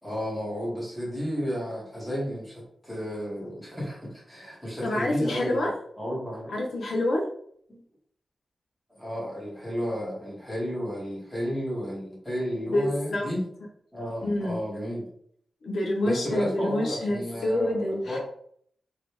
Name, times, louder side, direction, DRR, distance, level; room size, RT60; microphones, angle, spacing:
voice 1, 0.0-5.7 6.0-6.5 7.7-7.8 8.9-13.4 13.9-15.1 16.0-18.2, equal, ahead, -6 dB, 1.7 m, -32 dB
voice 2, 4.8-5.7 6.5-7.2 12.7-13.3 14.2-14.6 15.6-18.2, left 1 dB, 70° left, -1 dB, 0.8 m, -27 dB
4.1 x 3.2 x 3.3 m, 0.65 s
wide cardioid pair, 175°, 0 cm